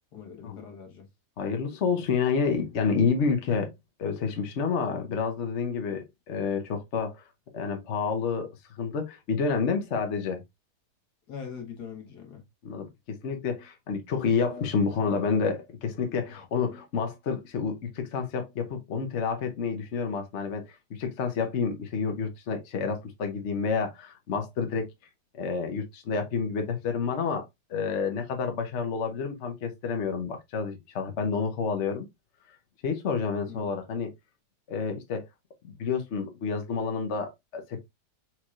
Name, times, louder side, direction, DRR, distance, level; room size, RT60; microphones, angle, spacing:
voice 1, 0.1-1.1 11.3-12.4 33.5-33.7, left 7 dB, 75° left, 1.8 m, -42 dB
voice 2, 1.4-3.7 4.0-7.2 7.5-10.4 12.6-24.9 25.3-32.1 32.8-34.1 34.7-35.2 35.6-37.8, left 5 dB, 50° left, 1.0 m, -29 dB
4.6 x 4.5 x 2.3 m
omnidirectional pair, 1.8 m